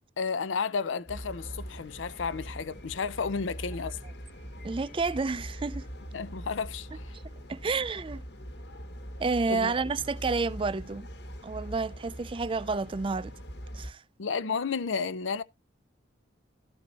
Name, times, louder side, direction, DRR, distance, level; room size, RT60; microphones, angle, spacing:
voice 1, 0.2-4.0 6.1-7.1 9.5-9.7 14.2-15.4, left 5 dB, 85° left, 0.6 m, -32 dB
sound 1, 1.1-13.9, equal, 60° left, 1.4 m, -42 dB
voice 2, 4.6-5.9 7.1-7.2 7.5-8.2 9.2-11.1 11.4-13.3 13.7-14.0, right 4 dB, 30° right, 0.4 m, -30 dB
13.0 x 4.5 x 4.1 m
head